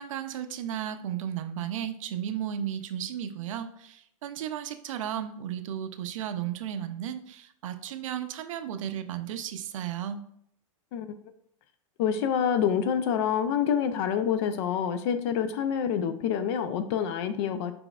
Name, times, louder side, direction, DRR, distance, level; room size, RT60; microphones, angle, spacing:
voice 1, 0.0-10.2, right 10 dB, 75° right, 9 dB, 0.5 m, -34 dB
voice 2, 12.0-17.7, left 8 dB, 50° left, 10 dB, 0.5 m, -27 dB
6.0 x 3.4 x 2.3 m, 0.68 s
supercardioid pair, 140°, 17 cm